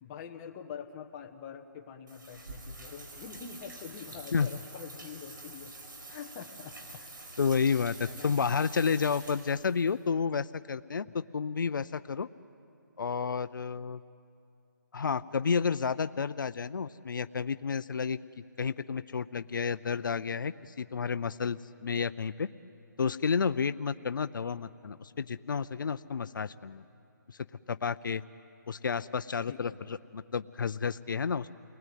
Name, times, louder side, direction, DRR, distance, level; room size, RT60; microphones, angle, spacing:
voice 1, 0.0-5.8 6.1-7.4 8.0-8.3 11.0-11.2 29.5-29.9, left 7 dB, 20° left, 3 dB, 1.1 m, -45 dB
sound 1, 2.1-9.9, right 2 dB, 75° right, 4.9 m, -47 dB
voice 2, 7.4-12.3 13.0-14.0 14.9-22.5 23.0-26.8 27.3-27.4 27.7-28.2 28.7-31.5, left 5 dB, 75° left, 13 dB, 0.6 m, -31 dB
29.5 x 20.0 x 9.2 m, 2.7 s
hypercardioid pair, 165°, 11 cm